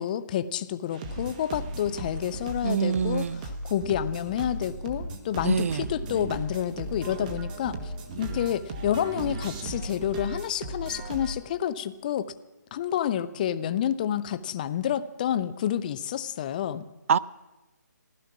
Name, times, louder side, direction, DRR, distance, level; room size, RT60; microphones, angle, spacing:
voice 1, 0.0-3.3 3.6-7.9 8.2-12.3 12.7-16.9, left 10 dB, 25° left, 0.5 m, -29 dB
sound 1, 0.9-11.3, right 2 dB, 25° right, 1.4 m, -36 dB
voice 2, 2.6-3.4 5.4-5.9 17.1-17.2, right 7 dB, 45° right, 0.4 m, -25 dB
15.5 x 13.0 x 5.9 m
figure-of-eight pair, 155°, 10 cm